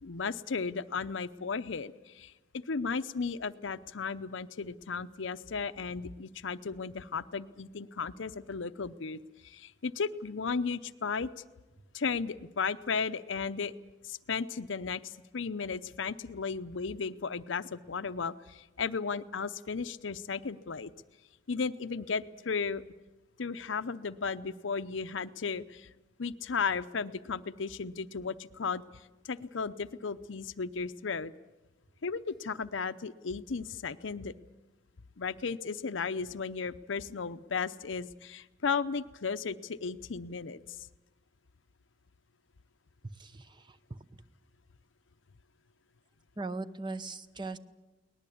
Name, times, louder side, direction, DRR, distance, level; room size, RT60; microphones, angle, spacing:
voice 1, 0.0-11.3 11.9-13.7 14.0-20.9 21.5-22.8 23.4-25.9 26.2-28.8 29.2-31.3 32.0-34.3 35.2-40.9, left 5 dB, 75° left, 10 dB, 0.7 m, -35 dB
voice 2, 43.2-43.6 43.9-44.0 46.4-47.6, right 3 dB, 25° right, 12 dB, 0.8 m, -39 dB
22.5 x 19.5 x 8.5 m, 1.1 s
head